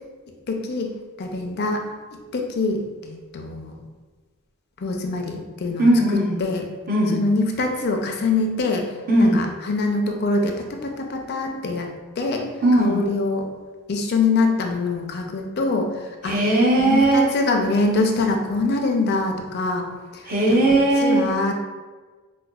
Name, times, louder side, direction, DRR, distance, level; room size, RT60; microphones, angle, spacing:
voice 1, 0.5-1.8 2.3-3.8 4.8-5.9 6.4-6.6 7.1-8.9 9.2-11.9 12.2-12.4 12.8-13.5 13.9-15.9 16.2-16.3 16.8-19.8 20.1-20.2 21.0-21.5, left 3 dB, 50° left, 2 dB, 0.4 m, -24 dB
voice 2, 5.8-6.4 6.9-7.2 9.1-9.4 12.6-13.0 16.2-17.3 20.3-21.3, right 1 dB, 45° right, -4 dB, 0.7 m, -18 dB
4.4 x 2.2 x 2.3 m, 1.4 s
head